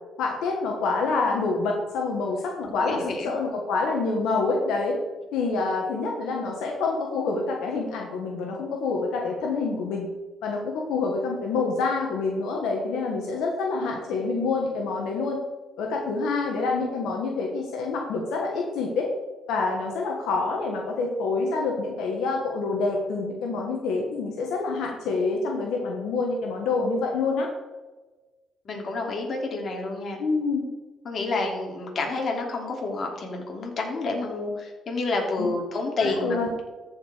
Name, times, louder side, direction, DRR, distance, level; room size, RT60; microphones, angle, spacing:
voice 1, 0.2-5.0 5.3-10.1 10.4-15.4 15.8-19.1 19.5-27.5 30.2-30.7 35.4-35.5 36.0-36.5, left 3 dB, 90° left, 0 dB, 1.5 m, -27 dB
voice 2, 2.8-3.3 28.6-30.2 31.0-36.4, left 3 dB, 50° left, 1 dB, 2.8 m, -29 dB
14.0 x 5.2 x 5.0 m, 1.2 s
cardioid pair, 90°, 0 cm